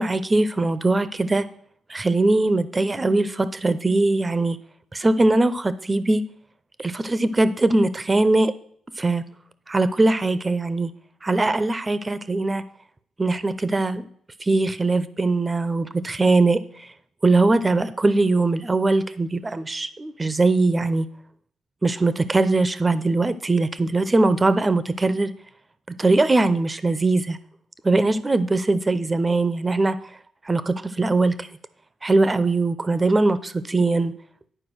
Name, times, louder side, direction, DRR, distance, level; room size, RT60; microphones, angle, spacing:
voice 1, 0.0-1.5 1.9-4.6 4.9-6.2 6.8-8.5 9.0-9.2 9.7-10.9 11.2-12.6 13.2-14.1 14.4-16.9 17.2-21.1 21.8-25.3 26.0-27.4 27.8-30.0 30.4-31.5 32.0-34.1, right 2 dB, 20° right, 14 dB, 0.6 m, -21 dB
10.0 x 4.6 x 6.2 m, 0.62 s
cardioid pair, 90°, 0 cm